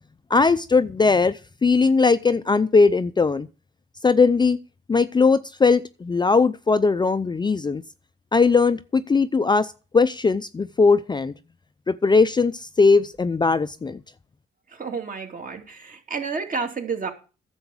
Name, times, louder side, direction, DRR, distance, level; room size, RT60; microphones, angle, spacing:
voice 1, 0.3-3.5 4.0-4.6 4.9-7.8 8.3-11.3 11.9-14.0, left 4 dB, 20° left, 0.5 m, -19 dB
voice 2, 14.7-17.1, right 5 dB, 45° right, 2.6 m, -30 dB
10.5 x 7.1 x 7.1 m
cardioid pair, 90°, 20 cm